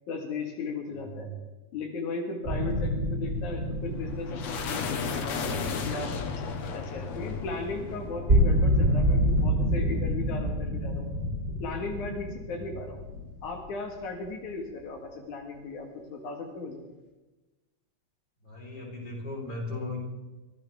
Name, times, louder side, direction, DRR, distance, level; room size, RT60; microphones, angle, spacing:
voice 1, 0.1-1.3 1.7-6.4 6.7-11.1 11.6-13.0 13.4-16.8, left 3 dB, 85° left, 2 dB, 3.2 m, -36 dB
voice 2, 0.9-1.3 2.5-2.9 18.4-20.0, left 2 dB, 35° left, -1 dB, 4.8 m, -38 dB
sound 1, 2.4-7.3 7.7-7.8 8.0-13.6, equal, 20° right, 3.9 m, -28 dB
sound 2, 3.5-14.3, left 5 dB, 65° left, 2.5 m, -36 dB
24.0 x 15.5 x 3.6 m, 1.1 s
omnidirectional pair, 3.4 m